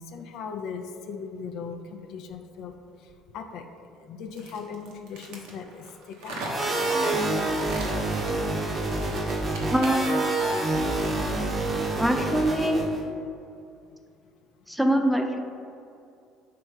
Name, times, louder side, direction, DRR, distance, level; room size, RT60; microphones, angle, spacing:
voice 1, 0.1-2.7 3.3-3.6 4.1-6.4, left 6 dB, 65° left, 5 dB, 0.3 m, -38 dB
sound 1, 4.3-10.2, right 2 dB, 80° right, 0.8 m, -39 dB
sound 2, 6.5-13.0, right 2 dB, 30° right, 0.7 m, -27 dB
voice 2, 9.7-10.3 12.0-12.8 14.7-15.4, equal, ahead, 4 dB, 0.4 m, -23 dB
3.4 x 3.0 x 4.8 m, 2.5 s
hypercardioid pair, 70°, 0 cm